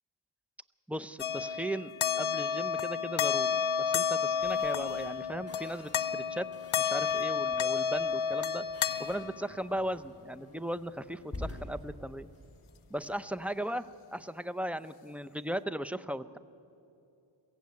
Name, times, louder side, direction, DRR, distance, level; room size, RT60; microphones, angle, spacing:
voice 1, 0.9-6.5 6.8-8.6 9.0-12.3 12.9-13.9 14.1-16.4, right 1 dB, 5° right, 11 dB, 0.6 m, -37 dB
sound 1, 1.2-9.5, left 7 dB, 80° left, 0.8 m, -31 dB
sound 2, 4.4-13.5, left 2 dB, 30° left, 5.1 m, -49 dB
22.0 x 15.5 x 9.5 m, 2.8 s
wide cardioid pair, 60°, 49 cm